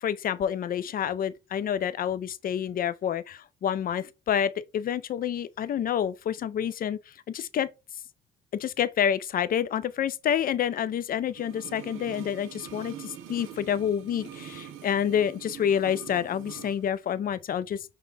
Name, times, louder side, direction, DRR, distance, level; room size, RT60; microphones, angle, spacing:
voice 1, 0.0-7.0 7.3-7.7 8.5-17.8, left 9 dB, 45° left, 0.4 m, -28 dB
sound 1, 11.3-16.8 17.1-17.2, right 9 dB, 85° right, 0.7 m, -44 dB
5.0 x 2.2 x 4.1 m
cardioid pair, 90°, 20 cm